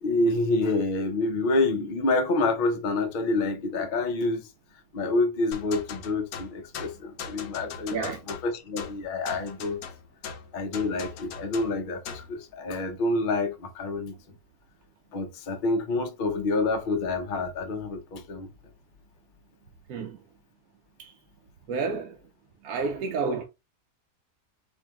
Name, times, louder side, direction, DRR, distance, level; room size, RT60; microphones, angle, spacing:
voice 1, 0.0-4.5 4.9-9.8 10.5-14.1 15.1-18.5, left 2 dB, 45° left, 0.6 m, -27 dB
sound 1, 5.5-12.4, left 6 dB, 75° left, 1.1 m, -40 dB
voice 2, 21.7-22.2 22.6-23.4, right 4 dB, 75° right, 1.1 m, -30 dB
4.4 x 3.1 x 2.3 m
omnidirectional pair, 1.6 m